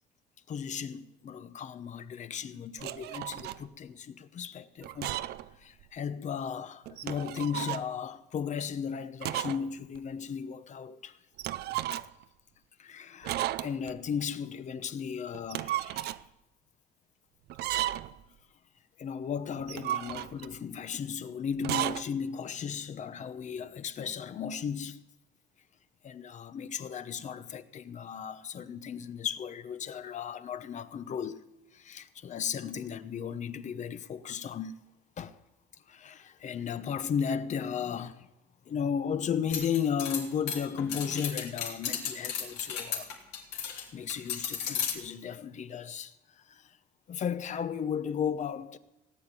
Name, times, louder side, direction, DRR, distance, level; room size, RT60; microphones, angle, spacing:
voice 1, 0.5-5.2 5.6-11.2 11.9-12.0 12.8-16.2 19.0-25.0 26.0-31.4 31.7-34.7 35.2-35.4 35.9-38.3 38.7-43.1 43.6-46.8 47.1-48.8, left 7 dB, 45° left, 0.9 m, -35 dB
sound 1, 2.8-3.6 4.8-5.5 5.8-5.9 6.9-7.9 9.2-9.7 9.9-10.0 11.4-12.2 13.2-14.0 15.3-16.2 17.5-18.2 19.6-20.6 21.6-22.0, right 14 dB, 75° right, 0.6 m, -34 dB
sound 2, 39.5-43.8 44.1-44.9, left 7 dB, 90° left, 3.0 m, -34 dB
18.0 x 8.9 x 8.3 m
cardioid pair, 110°, 17 cm